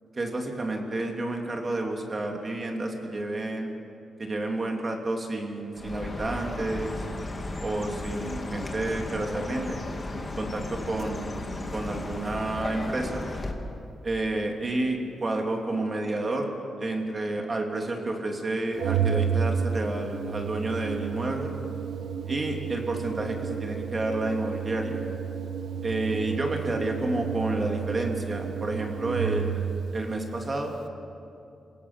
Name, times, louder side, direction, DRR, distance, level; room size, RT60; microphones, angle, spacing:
voice 1, 0.1-3.7 4.2-7.1 7.6-9.8 10.4-11.3 11.7-13.2 14.0-16.5 16.8-21.5 22.3-25.0 25.8-30.8, right 2 dB, 30° right, 2 dB, 2.8 m, -30 dB
Chirp tweet, 5.7-13.5, left 2 dB, 25° left, 2.2 m, -35 dB
Organ, 18.8-29.8, right 7 dB, 75° right, 1.1 m, -31 dB
27.0 x 17.5 x 7.3 m, 2.7 s
cardioid pair, 115°, 0 cm